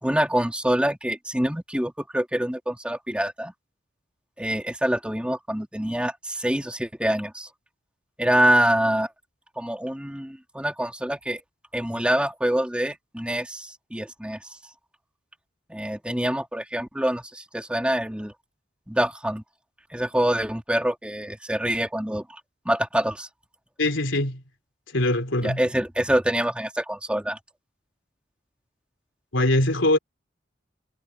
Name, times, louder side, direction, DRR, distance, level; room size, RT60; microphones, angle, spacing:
voice 1, 0.0-3.5 4.4-7.5 8.2-9.1 9.6-11.4 11.7-14.4 15.7-18.3 18.9-19.4 19.9-22.4 22.6-23.3 25.4-27.4, right 1 dB, 5° right, 2.9 m, -25 dB
voice 2, 23.8-24.4 24.9-25.6 29.3-30.0, left 1 dB, 90° left, 3.6 m, -22 dB
head